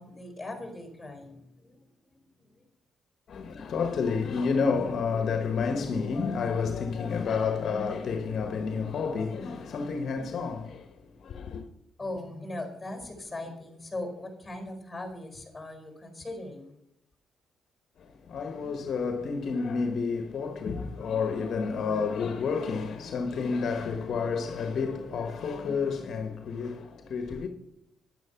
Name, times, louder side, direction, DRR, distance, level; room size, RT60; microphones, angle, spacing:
voice 1, 0.0-1.8 2.4-2.6 12.0-16.7, left 2 dB, 15° left, 4.9 m, -39 dB
voice 2, 3.3-10.9 11.2-11.6 18.0-27.5, left 5 dB, 60° left, 1.4 m, -30 dB
10.5 x 10.5 x 5.9 m
cardioid pair, 90°, 0 cm